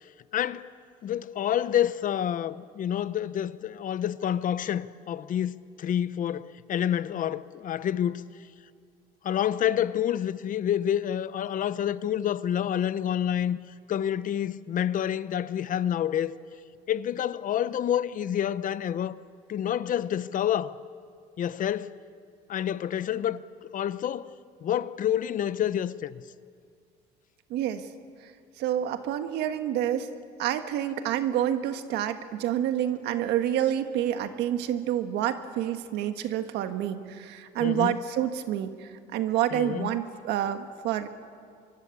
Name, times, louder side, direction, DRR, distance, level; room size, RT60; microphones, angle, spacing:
voice 1, 0.3-0.7 1.0-8.3 9.2-13.6 13.9-16.4 16.9-19.1 19.5-20.8 21.4-22.0 22.5-24.3 24.6-26.2 37.6-38.0 39.5-40.0, left 10 dB, 50° left, 0.8 m, -28 dB
voice 2, 27.5-27.8 28.6-30.1 30.4-41.1, right 11 dB, 85° right, 1.6 m, -28 dB
24.5 x 24.0 x 8.4 m
cardioid pair, 110°, 17 cm